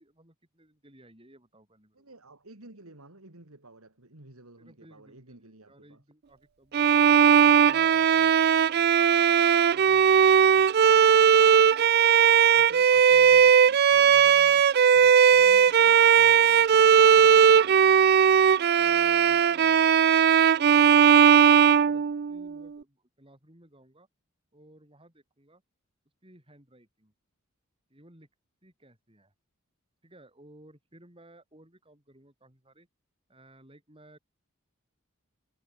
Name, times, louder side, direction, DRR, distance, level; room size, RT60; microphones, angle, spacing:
voice 1, 0.0-2.1 4.6-6.9 7.4-11.0 14.7-14.9 18.8-24.1 24.5-25.6 26.2-27.1 27.9-28.3 28.6-29.3 30.0-32.9 33.3-34.2, right 1 dB, 25° right, 6.7 m, -56 dB
voice 2, 1.9-6.0 12.5-18.0, right 2 dB, 80° right, 3.3 m, -51 dB
Bowed string instrument, 6.7-22.6, right 7 dB, 45° right, 0.4 m, -18 dB
head